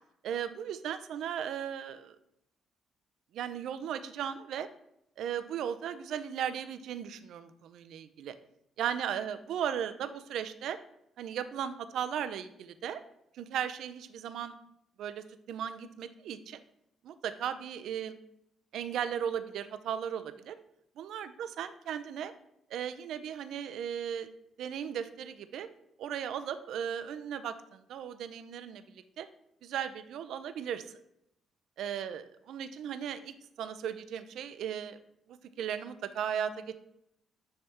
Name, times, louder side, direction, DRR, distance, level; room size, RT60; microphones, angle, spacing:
voice 1, 0.2-2.2 3.3-4.7 5.2-8.3 8.8-10.8 11.2-13.0 13.3-14.5 15.0-16.6 17.0-18.2 18.7-20.6 21.0-22.3 22.7-24.3 24.6-25.7 26.0-28.8 29.2-29.3 29.6-30.8 31.8-35.0 35.3-36.8, right 9 dB, 75° right, 12 dB, 0.4 m, -36 dB
9.6 x 3.4 x 2.9 m, 0.77 s
cardioid pair, 90°, 0 cm